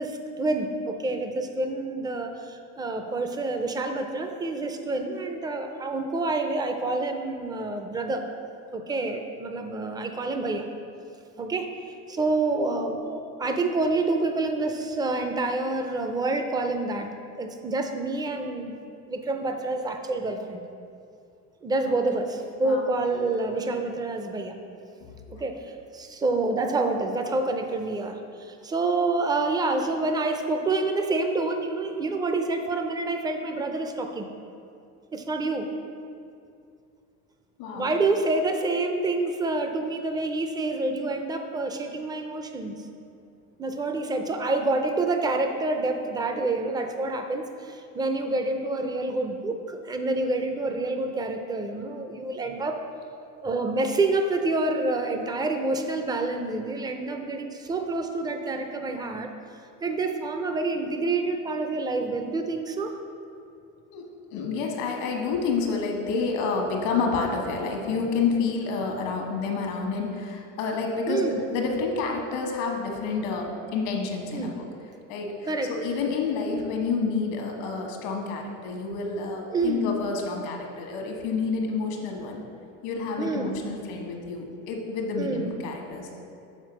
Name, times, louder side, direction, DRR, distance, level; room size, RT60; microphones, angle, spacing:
voice 1, 0.0-8.2 8.7-10.7 11.4-11.7 12.1-17.1 17.4-18.8 19.1-20.6 21.6-24.6 25.3-34.3 35.1-35.7 37.7-42.8 43.6-52.8 53.4-59.3 59.8-62.9 71.1-71.4 74.3-74.6 75.5-75.7 79.5-79.9 83.2-83.6 85.2-85.6, right 2 dB, 10° right, 5 dB, 0.4 m, -28 dB
voice 2, 21.9-22.3 22.6-22.8 25.0-25.1 37.6-37.9 63.9-64.1 64.3-74.6 75.1-82.4 82.8-86.2, left 4 dB, 80° left, 1 dB, 1.3 m, -29 dB
6.5 x 4.2 x 6.1 m, 2.5 s
cardioid pair, 125°, 33 cm